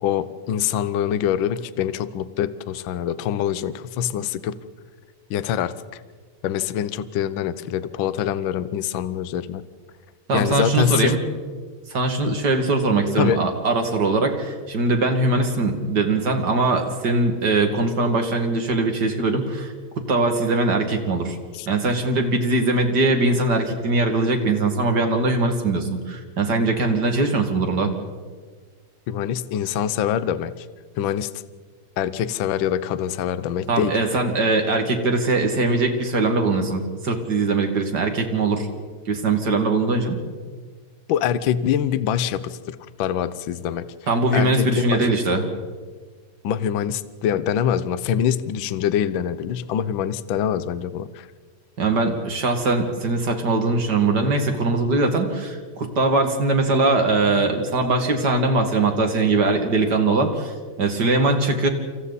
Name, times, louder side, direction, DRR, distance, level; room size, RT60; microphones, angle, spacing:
voice 1, 0.0-4.6 5.3-6.0 6.4-9.6 10.3-11.2 13.2-13.4 21.5-21.7 29.1-30.7 30.9-31.3 32.0-34.0 41.1-43.9 44.3-45.1 46.4-51.3, left 9 dB, 75° left, 14 dB, 1.1 m, -24 dB
voice 2, 10.3-11.2 11.9-19.7 20.1-21.4 21.7-27.9 33.7-38.7 39.1-40.2 44.1-45.4 51.8-61.7, right 2 dB, 35° right, 4 dB, 2.6 m, -21 dB
29.0 x 26.5 x 4.2 m, 1.5 s
omnidirectional pair, 3.4 m